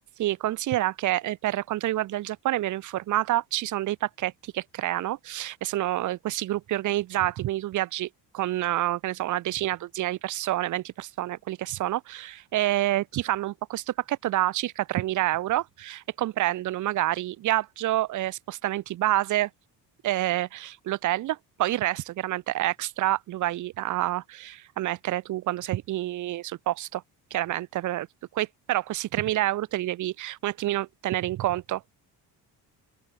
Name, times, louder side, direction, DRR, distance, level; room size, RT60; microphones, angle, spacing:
voice 1, 0.2-8.1 8.3-19.5 20.0-27.0 27.3-28.1 28.3-31.8, right 15 dB, 45° right, 0.6 m, -28 dB
open air
cardioid pair, 145°, 41 cm